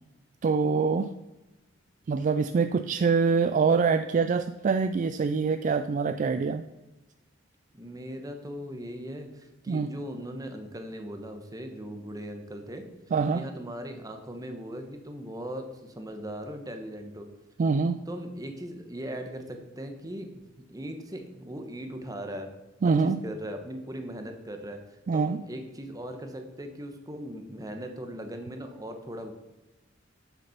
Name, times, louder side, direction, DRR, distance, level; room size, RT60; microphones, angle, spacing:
voice 1, 0.4-1.1 2.1-6.6 9.7-9.9 13.1-13.4 17.6-18.0 22.8-23.2 25.1-25.4, right 5 dB, 40° right, 10 dB, 0.3 m, -25 dB
voice 2, 6.0-6.3 7.7-12.8 13.3-17.3 18.1-20.4 20.7-22.5 22.8-29.3, equal, 20° right, 6 dB, 1.0 m, -39 dB
7.3 x 6.6 x 5.7 m, 1.0 s
head